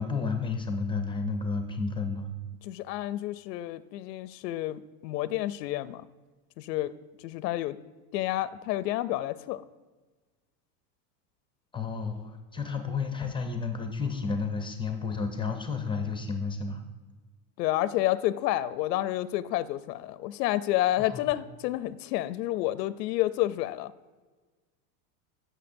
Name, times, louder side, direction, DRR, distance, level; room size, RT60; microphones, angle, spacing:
voice 1, 0.0-2.3 11.7-16.8 21.0-21.3, left 4 dB, 10° left, 5 dB, 0.4 m, -31 dB
voice 2, 2.6-6.0 6.6-6.9 7.2-7.8 8.1-9.6 17.6-23.9, left 15 dB, 90° left, 15 dB, 0.5 m, -29 dB
13.5 x 6.3 x 2.6 m, 1.3 s
supercardioid pair, 125°, 48 cm